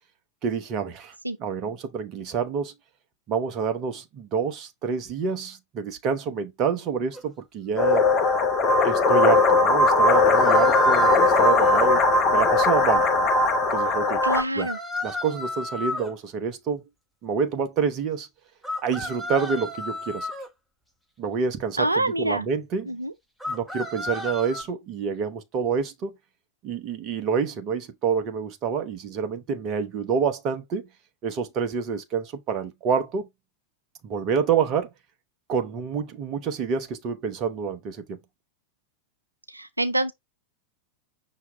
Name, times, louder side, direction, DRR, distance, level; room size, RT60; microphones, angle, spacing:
voice 1, 0.4-1.1 1.4-2.7 3.3-8.0 8.8-12.0 12.3-13.0 13.7-14.2 14.5-14.7 15.0-16.8 17.2-18.3 18.8-20.3 21.2-22.9 23.5-26.1 26.6-30.9 31.2-33.3 34.0-34.9 35.5-38.2, right 6 dB, 35° right, 0.8 m, -27 dB
sound 1, 7.1-7.2 10.1-11.9 14.3-16.1 18.6-20.5 23.4-24.6, left 2 dB, ahead, 1.0 m, -32 dB
sound 2, 7.8-14.4, left 3 dB, 30° left, 0.7 m, -19 dB
voice 2, 14.2-14.8 21.8-22.5 22.9-23.1 39.5-40.1, right 1 dB, 85° right, 0.3 m, -26 dB
5.8 x 2.9 x 3.2 m
figure-of-eight pair, 90°, 0 cm